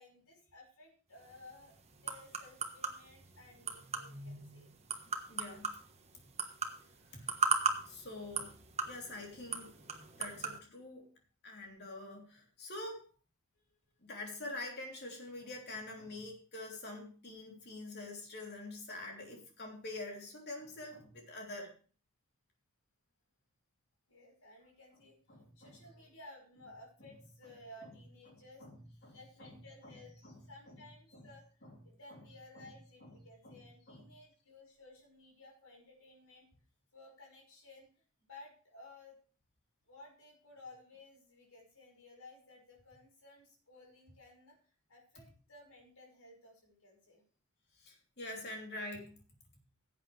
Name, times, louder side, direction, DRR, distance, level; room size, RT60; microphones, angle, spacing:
voice 1, 0.0-4.7 13.6-13.7 24.1-25.2 25.6-28.7 29.1-30.1 30.5-36.5 36.9-37.9 38.3-39.2 39.9-44.6 44.9-47.2, left 2 dB, 75° left, 0 dB, 5.5 m, -57 dB
sound 1, 1.2-10.6, right 5 dB, 30° right, 1.3 m, -39 dB
voice 2, 5.3-5.7 7.1-7.3 7.8-8.5 8.8-9.7 10.2-11.0 11.4-13.0 14.1-21.7 25.3-25.7 28.6-28.7 29.0-29.5 29.8-29.9 30.2-30.4 30.7-30.8 31.1-31.3 31.6-31.7 32.1-32.2 32.6-32.7 33.0-33.1 33.4-33.6 33.9-34.0 47.8-49.1, left 2 dB, 50° left, 0 dB, 3.3 m, -45 dB
16.5 x 8.4 x 3.3 m, 0.39 s
head